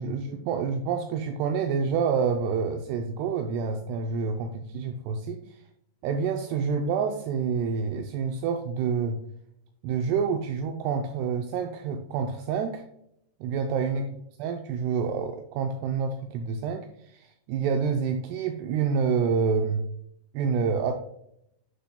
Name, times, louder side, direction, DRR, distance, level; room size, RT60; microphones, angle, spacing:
voice 1, 0.0-5.6 6.0-9.2 9.8-12.8 13.4-14.1 14.4-19.8 20.3-20.9, right 6 dB, 85° right, 4 dB, 2.3 m, -28 dB
7.9 x 6.7 x 2.2 m, 0.73 s
omnidirectional pair, 5.3 m